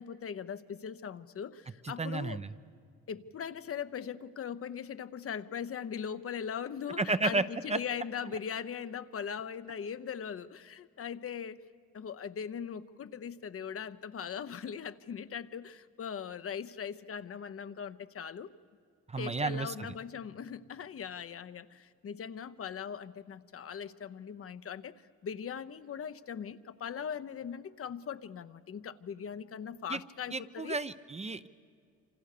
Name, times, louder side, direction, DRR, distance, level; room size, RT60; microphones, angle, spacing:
voice 1, 0.0-2.4 3.1-11.6 11.9-18.5 19.2-25.0 25.2-30.8, left 7 dB, 50° left, 11 dB, 0.9 m, -40 dB
voice 2, 1.8-2.5 7.0-7.8 19.1-19.9 29.9-30.0 30.3-31.5, right 3 dB, 20° right, 12 dB, 0.7 m, -32 dB
27.0 x 26.5 x 6.8 m, 2.2 s
cardioid pair, 90°, 30 cm